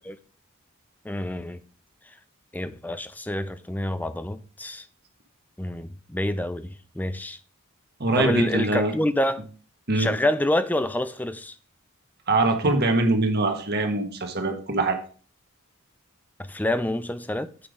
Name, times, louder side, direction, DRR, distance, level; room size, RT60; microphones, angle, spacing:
voice 1, 1.0-1.6 2.5-4.8 5.6-7.4 8.2-9.5 9.9-11.6 16.4-17.5, left 1 dB, 10° left, 0.4 m, -27 dB
voice 2, 8.0-8.9 9.9-10.1 12.3-15.0, right 2 dB, 50° right, 1.6 m, -23 dB
8.6 x 5.7 x 5.1 m
head